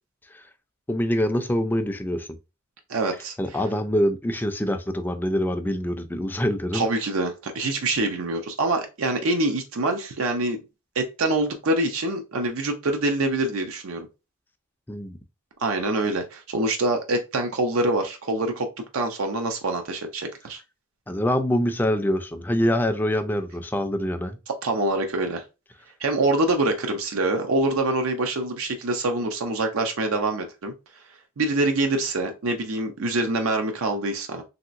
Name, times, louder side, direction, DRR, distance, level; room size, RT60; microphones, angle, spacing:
voice 1, 0.9-2.3 3.4-6.9 14.9-15.2 21.1-24.4, equal, 10° left, 0.3 m, -25 dB
voice 2, 2.9-3.3 6.7-10.6 11.0-14.1 15.6-18.7 18.9-20.6 24.6-25.4 26.0-30.7 31.4-34.4, right 2 dB, 85° right, 0.6 m, -25 dB
3.1 x 2.8 x 2.5 m
head